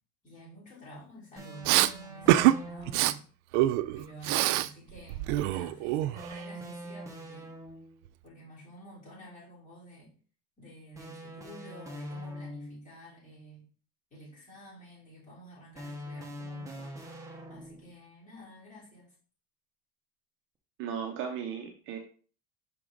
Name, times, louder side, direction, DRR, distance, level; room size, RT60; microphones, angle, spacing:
voice 1, 0.2-3.2 3.9-7.5 8.2-10.1 10.6-13.7 14.1-17.0 17.5-19.2, right 1 dB, 20° left, -6 dB, 3.4 m, -50 dB
sound 1, 1.4-3.2 6.2-8.0 10.9-12.9 15.8-18.0, equal, 10° right, 0.9 m, -43 dB
Respiratory sounds, 1.6-1.9 2.3-2.6 2.9-3.1 3.5-4.7 5.0-6.4, right 15 dB, 85° right, 0.5 m, -25 dB
voice 2, 20.8-22.0, right 7 dB, 35° right, 4 dB, 0.7 m, -36 dB
6.1 x 4.7 x 3.8 m, 0.41 s
cardioid pair, 175°, 35 cm